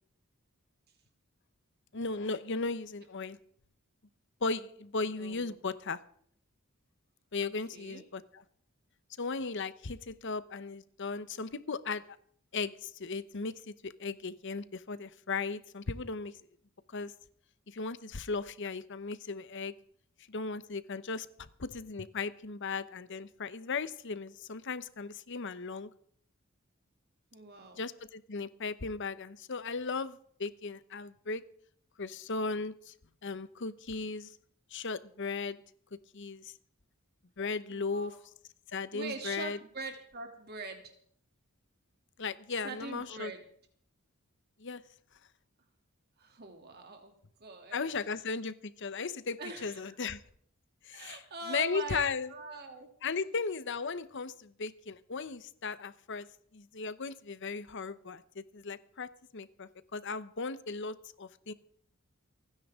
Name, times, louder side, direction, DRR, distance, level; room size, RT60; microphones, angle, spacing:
voice 1, 1.9-3.4 4.4-6.0 7.3-8.2 9.2-12.0 12.5-16.3 16.9-17.1 17.7-19.7 20.3-25.9 27.8-31.4 32.0-32.9 33.2-34.3 34.7-35.6 36.1-36.5 37.4-38.1 38.7-39.6 42.2-43.3 44.6-44.8 47.7-50.2 50.8-51.2 51.5-52.3 53.0-56.3 56.5-61.5, left 4 dB, 60° left, 14 dB, 0.9 m, -36 dB
voice 2, 5.2-5.5 7.4-8.0 27.3-27.8 37.7-38.2 38.9-40.9 42.6-43.4 46.2-47.1 47.4-47.9 49.4-50.0 50.9-52.9, right 3 dB, 50° right, 3 dB, 2.8 m, -43 dB
28.5 x 10.0 x 3.7 m, 0.62 s
head